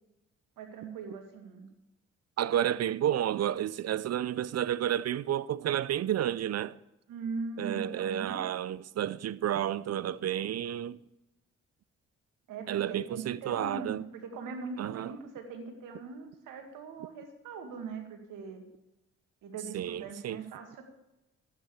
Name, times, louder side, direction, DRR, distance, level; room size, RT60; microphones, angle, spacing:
voice 1, 0.6-1.7 7.1-8.4 12.5-18.6 19.4-20.8, right 4 dB, 75° right, 2.1 m, -41 dB
voice 2, 2.4-6.8 7.6-11.0 12.7-14.0 14.8-15.1 19.7-20.4, right 11 dB, 50° right, 0.5 m, -31 dB
13.0 x 9.1 x 6.8 m
hypercardioid pair, 45°, 32 cm